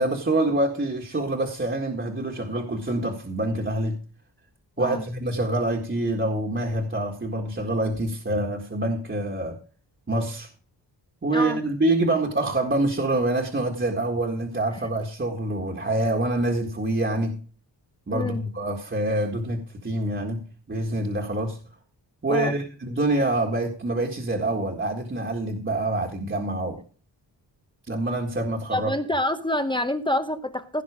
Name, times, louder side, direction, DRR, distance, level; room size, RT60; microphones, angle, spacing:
voice 1, 0.0-4.0 4.8-9.6 10.1-10.5 11.2-17.4 18.1-21.6 22.2-26.8 27.9-28.9, right 2 dB, 25° right, 1 dB, 1.8 m, -26 dB
voice 2, 18.1-18.4 22.3-22.5 28.7-30.8, left 1 dB, 10° left, 8 dB, 0.9 m, -27 dB
16.5 x 5.9 x 4.9 m, 0.39 s
wide cardioid pair, 135°, 43 cm